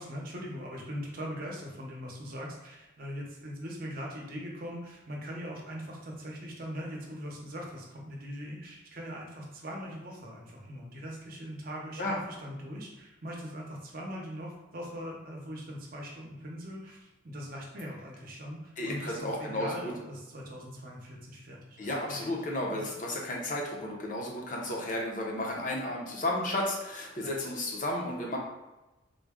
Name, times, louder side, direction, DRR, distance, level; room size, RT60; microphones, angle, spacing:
voice 1, 0.0-22.2 22.7-22.8 27.2-27.3, equal, 45° right, -1 dB, 0.7 m, -41 dB
voice 2, 18.8-19.9 21.8-28.4, left 1 dB, 40° left, -1 dB, 0.7 m, -33 dB
3.8 x 2.2 x 3.5 m, 1.0 s
head